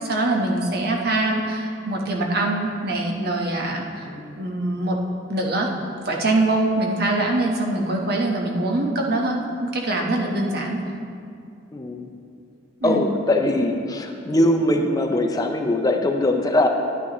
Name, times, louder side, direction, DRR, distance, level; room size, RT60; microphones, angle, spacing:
voice 1, 0.0-4.1 4.4-5.0 5.3-5.7 6.0-10.8 12.8-13.1, right 2 dB, 55° right, 0 dB, 1.1 m, -23 dB
voice 2, 4.1-4.4 11.7-12.1 12.8-16.7, left 1 dB, 20° left, 4 dB, 0.5 m, -21 dB
11.0 x 9.4 x 3.0 m, 2.4 s
head